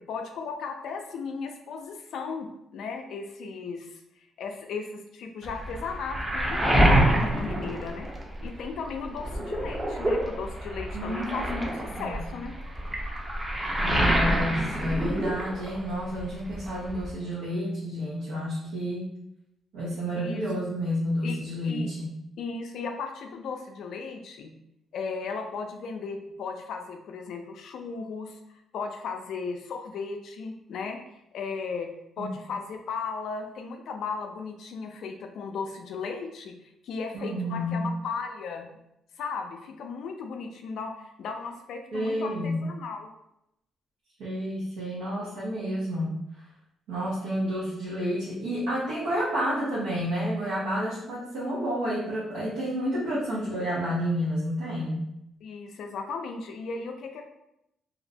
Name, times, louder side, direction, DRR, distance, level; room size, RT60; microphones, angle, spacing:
voice 1, 0.1-4.0 4.4-8.1 8.4-12.5 20.2-20.4 21.2-21.4 21.6-21.9 22.4-24.5 24.9-28.4 28.7-31.0 31.3-31.9 32.2-36.5 36.8-38.7 39.2-43.1 55.4-57.2, left 5 dB, 70° left, 5 dB, 0.3 m, -36 dB
Waves surf, 5.4-8.6 9.0-15.9 16.2-17.1, right 1 dB, 20° right, 0.5 m, -26 dB
voice 2, 10.9-12.2 13.8-19.1 19.7-22.1 32.2-32.3 37.1-37.9 41.9-42.6 44.2-46.2 46.9-55.0, equal, 90° right, -8 dB, 0.7 m, -30 dB
2.4 x 2.1 x 2.6 m, 0.81 s
cardioid pair, 90°, 0 cm